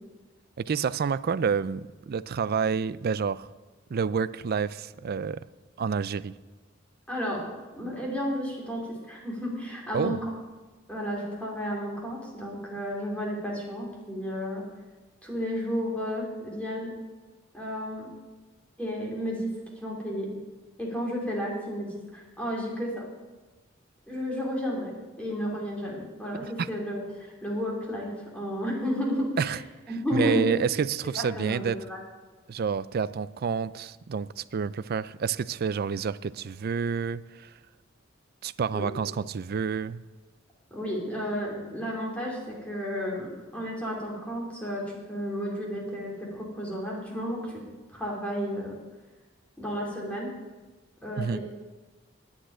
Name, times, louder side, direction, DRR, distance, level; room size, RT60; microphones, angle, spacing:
voice 1, 0.6-3.5 3.9-5.4 5.8-6.3 9.9-10.2 26.6-26.7 29.4-29.6 30.1-31.8 32.5-37.5 38.4-40.0 51.2-51.4, right 6 dB, 50° right, 16 dB, 0.4 m, -29 dB
voice 2, 7.1-7.5 7.7-10.2 10.9-14.6 15.2-16.9 17.5-18.1 18.8-19.5 19.8-20.3 20.8-23.1 24.1-28.1 28.3-29.5 29.9-30.5 31.1-32.0 38.7-38.9 40.7-47.6 47.9-48.7 49.6-50.3 51.0-51.4, equal, 5° left, -3 dB, 3.1 m, -32 dB
9.9 x 8.9 x 9.0 m, 1.2 s
head